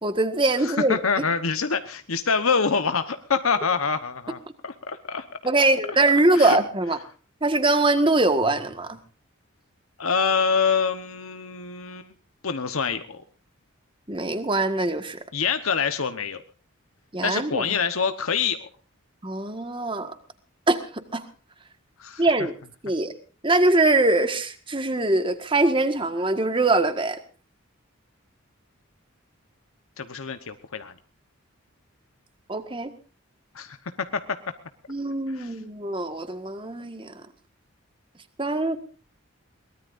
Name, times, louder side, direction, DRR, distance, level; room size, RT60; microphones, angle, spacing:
voice 1, 0.0-1.0 5.4-7.0 7.4-9.0 14.1-15.2 17.1-17.6 19.2-20.1 20.7-20.8 21.1-21.2 22.2-22.5 22.8-23.1 23.4-27.2 32.5-32.9 34.9-37.1 38.4-38.8, right 2 dB, 25° right, 9 dB, 1.6 m, -22 dB
voice 2, 0.6-5.2 6.3-6.6 10.0-12.1 12.4-13.2 15.3-16.4 17.2-18.7 22.0-22.3 30.0-30.9 33.5-34.4 35.3-35.5, left 5 dB, 80° left, 8 dB, 1.1 m, -26 dB
22.5 x 19.5 x 2.6 m, 0.39 s
head